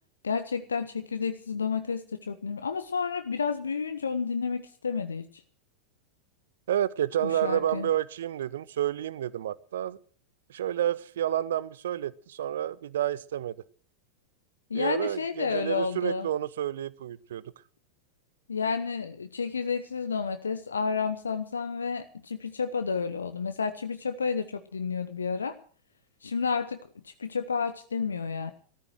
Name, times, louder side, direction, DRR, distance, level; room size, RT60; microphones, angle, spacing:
voice 1, 0.2-5.3 7.2-7.9 14.7-16.3 18.5-25.6 26.2-28.5, left 5 dB, 75° left, 0.9 m, -31 dB
voice 2, 6.7-10.0 10.5-13.5 14.7-17.4, right 11 dB, 60° right, 0.7 m, -30 dB
14.5 x 14.0 x 6.3 m
figure-of-eight pair, 90°, 0 cm